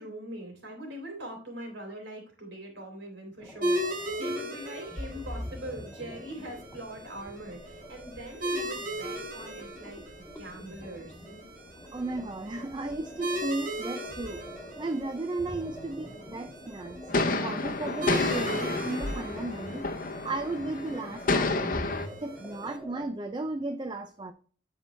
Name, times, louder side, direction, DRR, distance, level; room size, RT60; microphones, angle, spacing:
voice 1, 0.0-11.1, equal, 70° right, 2 dB, 3.4 m, -42 dB
sound 1, 3.4-23.1, equal, ahead, 1.9 m, -45 dB
sound 2, 3.6-22.8, right 1 dB, 40° right, 2.1 m, -38 dB
voice 2, 11.9-14.4 14.8-17.0 17.2-19.9 20.2-21.8 22.2-24.3, right 2 dB, 25° right, 8 dB, 0.4 m, -35 dB
sound 3, 17.1-22.1, left 3 dB, 45° left, 0.8 m, -30 dB
12.0 x 4.6 x 3.2 m, 0.42 s
head